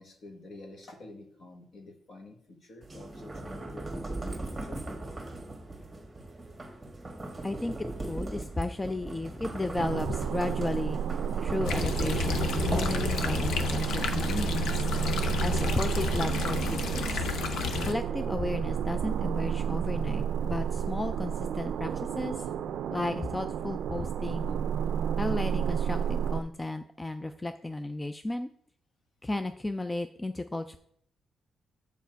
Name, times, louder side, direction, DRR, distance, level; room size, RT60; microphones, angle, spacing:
voice 1, 0.0-4.8 22.9-23.0, left 2 dB, 45° left, 4 dB, 1.5 m, -49 dB
sound 1, 2.8-13.8, right 2 dB, 10° right, 1.5 m, -38 dB
voice 2, 7.4-11.0 11.4-14.8 15.4-17.3 17.8-22.4 22.9-24.6 25.2-28.5 29.2-30.8, left 2 dB, 10° left, 8 dB, 0.3 m, -34 dB
sound 2, 9.8-26.4, right 8 dB, 80° right, 0.4 m, -31 dB
sound 3, 11.6-17.9, left 6 dB, 75° left, 0.8 m, -31 dB
7.1 x 7.0 x 4.5 m, 0.64 s
wide cardioid pair, 160°, 0 cm